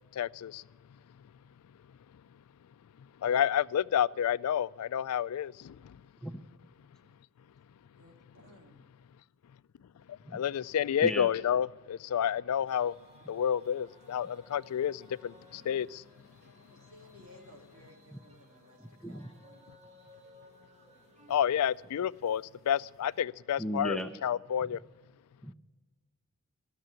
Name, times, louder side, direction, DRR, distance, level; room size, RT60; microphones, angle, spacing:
voice 1, 0.1-0.6 3.2-6.0 10.1-12.9 13.3-16.0 21.3-24.8, left 9 dB, 90° left, 0.3 m, -30 dB
voice 2, 8.0-8.8 16.7-19.7, left 1 dB, 70° right, 2.8 m, -57 dB
sound 1, 12.6-23.2, equal, 30° right, 1.8 m, -60 dB
voice 3, 23.6-24.1 25.4-25.5, equal, ahead, 0.5 m, -35 dB
15.5 x 6.7 x 8.9 m
head